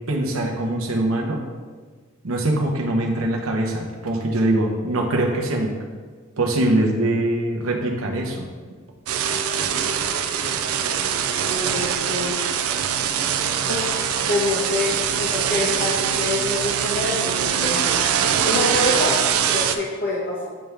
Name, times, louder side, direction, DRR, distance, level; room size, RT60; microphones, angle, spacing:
voice 1, 0.1-1.4 2.2-5.7 6.4-8.5, right 1 dB, 70° right, 1 dB, 0.9 m, -22 dB
sound 1, 9.1-19.7, right 8 dB, 90° right, 0.4 m, -23 dB
voice 2, 11.0-12.4 13.7-14.9 15.2-20.5, left 2 dB, 50° left, -6 dB, 1.0 m, -27 dB
8.5 x 3.4 x 3.4 m, 1.5 s
head